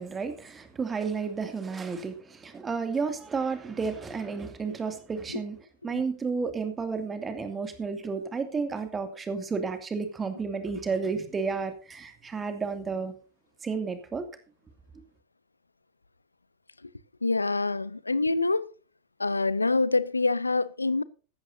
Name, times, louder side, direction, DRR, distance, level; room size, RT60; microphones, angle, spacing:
voice 1, 0.0-5.6 5.8-13.1 13.6-14.3, right 5 dB, 15° right, 2.5 m, -32 dB
voice 2, 17.2-18.7 19.2-21.0, left 3 dB, 80° left, 0.6 m, -26 dB
15.5 x 12.5 x 2.7 m
figure-of-eight pair, 90°, 0 cm